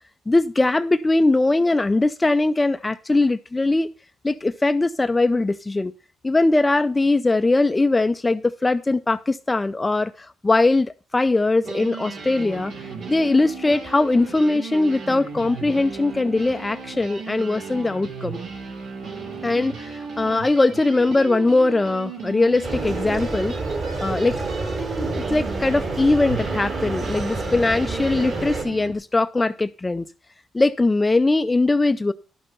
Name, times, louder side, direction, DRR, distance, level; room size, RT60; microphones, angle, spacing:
voice 1, 0.3-3.9 4.2-5.9 6.2-12.7 13.1-18.4 19.4-23.5 24.0-24.5 24.8-30.0 30.5-32.1, left 2 dB, 20° left, 9 dB, 0.5 m, -21 dB
sound 1, 11.6-28.9, right 5 dB, 70° right, 3.2 m, -35 dB
sound 2, 22.6-28.6, right 3 dB, 45° right, 5.1 m, -28 dB
11.0 x 7.5 x 5.4 m, 0.34 s
cardioid pair, 90°, 0 cm